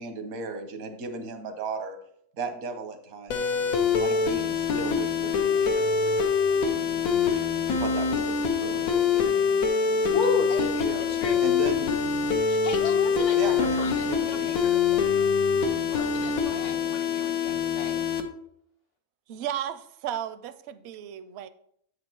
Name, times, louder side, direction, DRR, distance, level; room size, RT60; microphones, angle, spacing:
voice 1, 0.0-2.0 2.3-3.5 3.9-6.2 6.6-6.7 7.3-9.5 10.8-11.0 11.4-11.9 13.3-14.5, right 3 dB, 90° right, 6 dB, 1.5 m, -36 dB
sound 1, 3.3-18.2, left 6 dB, 85° left, 1.2 m, -24 dB
voice 2, 10.1-11.4 12.5-15.1 15.9-18.1, left 4 dB, 60° left, 5 dB, 1.1 m, -35 dB
voice 3, 19.3-21.5, right 10 dB, 65° right, 13 dB, 0.7 m, -34 dB
8.1 x 5.2 x 4.5 m, 0.68 s
omnidirectional pair, 1.4 m